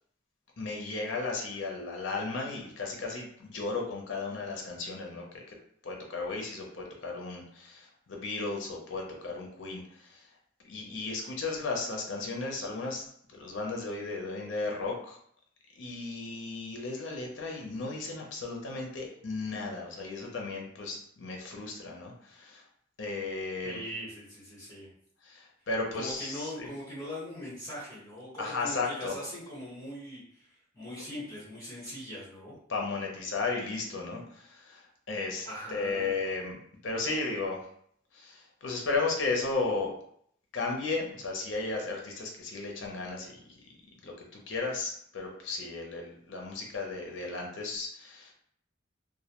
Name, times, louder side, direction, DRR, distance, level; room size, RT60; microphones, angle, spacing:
voice 1, 0.6-5.6 5.8-10.2 10.7-13.1 13.3-15.2 15.8-22.6 23.0-23.8 25.2-26.7 28.4-29.1 32.7-34.8 35.1-36.6 36.8-37.6 38.1-39.9 40.5-43.3 44.0-48.3, left 3 dB, 65° left, 0 dB, 0.5 m, -35 dB
voice 2, 23.6-24.9 25.9-32.6 35.4-36.2, equal, 20° left, -9 dB, 1.0 m, -41 dB
2.1 x 2.1 x 2.8 m, 0.66 s
head